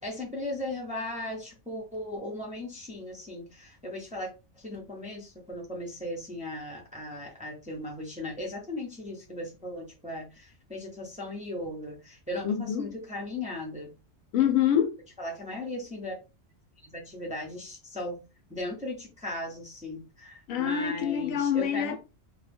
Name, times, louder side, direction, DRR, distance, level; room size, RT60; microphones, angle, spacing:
voice 1, 0.0-13.9 14.4-14.5 15.2-16.2 16.8-18.2 18.5-21.9, left 1 dB, 10° right, 0.5 m, -37 dB
voice 2, 12.4-12.9 14.3-15.0 20.5-22.0, left 9 dB, 90° left, 1.0 m, -26 dB
2.3 x 2.1 x 3.3 m
omnidirectional pair, 1.4 m